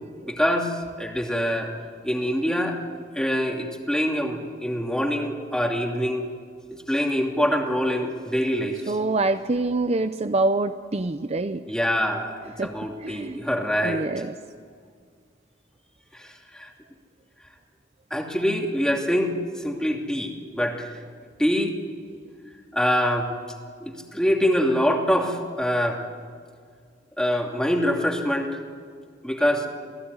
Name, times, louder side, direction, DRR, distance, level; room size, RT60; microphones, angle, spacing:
voice 1, 0.3-0.7 1.0-1.7 2.0-2.8 3.1-6.2 6.9-8.8 11.7-14.1 16.5-16.7 18.1-19.3 19.6-20.9 21.4-21.7 22.7-23.3 23.8-26.0 27.2-28.6 29.2-29.7, equal, 5° left, 1 dB, 2.7 m, -24 dB
voice 2, 8.9-11.6 12.6-12.7 13.0-13.4 13.8-14.3, right 2 dB, 35° right, 10 dB, 0.6 m, -25 dB
28.0 x 18.5 x 9.7 m, 2.1 s
head